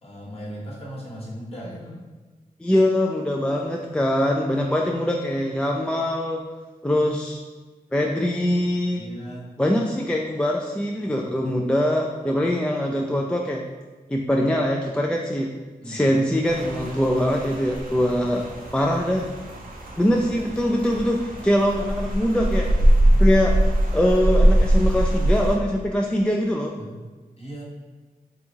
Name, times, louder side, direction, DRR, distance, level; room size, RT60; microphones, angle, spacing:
voice 1, 0.0-2.1 9.0-9.5 15.8-16.1 26.8-26.9 27.4-27.6, equal, 40° left, -4 dB, 1.1 m, -37 dB
voice 2, 2.6-6.4 6.8-7.4 7.9-9.0 9.6-13.6 14.1-15.5 15.9-18.4 18.7-19.2 20.0-22.7 23.2-23.5 23.9-26.7, equal, 5° left, 0 dB, 0.3 m, -22 dB
Rain, 16.4-25.6, right 1 dB, 65° right, 0.6 m, -22 dB
2.9 x 2.6 x 3.5 m, 1.3 s
cardioid pair, 50°, 15 cm